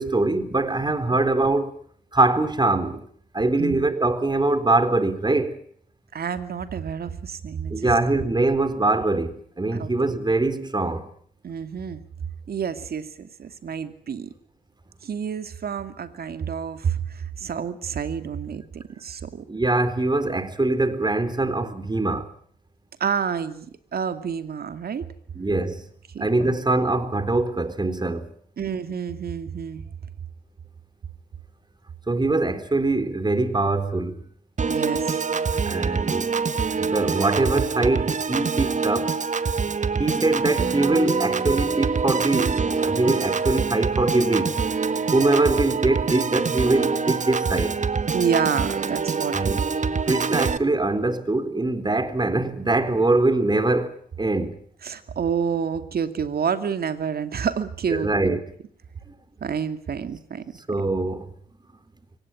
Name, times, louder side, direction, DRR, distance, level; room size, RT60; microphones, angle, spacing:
voice 1, 0.0-1.8 2.1-3.1 3.3-5.6 7.7-11.1 19.5-22.3 25.4-25.9 26.2-28.3 32.1-34.2 35.6-36.3 36.7-39.2 40.0-44.6 45.1-47.7 49.3-49.6 50.1-54.6 57.9-58.4 60.7-61.3, right 2 dB, 25° right, 3.9 m, -23 dB
voice 2, 6.1-7.9 9.7-9.9 11.4-12.0 12.5-14.3 15.0-19.4 23.0-23.7 23.9-25.0 26.1-26.5 28.6-29.8 34.7-35.2 48.1-49.6 54.8-58.4 59.4-60.4, right 7 dB, 60° right, 2.4 m, -29 dB
Piano / Organ, 34.6-50.6, right 5 dB, 45° right, 1.5 m, -25 dB
24.0 x 18.5 x 9.8 m
supercardioid pair, 45°, 18 cm